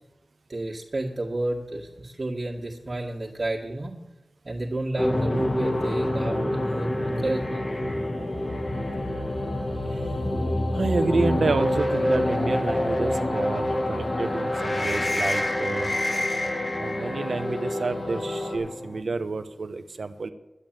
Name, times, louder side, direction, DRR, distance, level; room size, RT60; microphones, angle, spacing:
voice 1, 0.5-3.9 4.4-7.7, right 2 dB, 50° right, -3 dB, 2.0 m, -31 dB
sound 1, 5.0-19.0, left 1 dB, 35° left, 1.3 m, -28 dB
sound 2, 5.1-18.6, left 2 dB, 85° left, 3.6 m, -34 dB
voice 2, 10.7-15.9 16.8-20.3, right 3 dB, 75° right, 8 dB, 1.0 m, -29 dB
11.0 x 8.7 x 9.1 m, 0.98 s
wide cardioid pair, 95°, 0 cm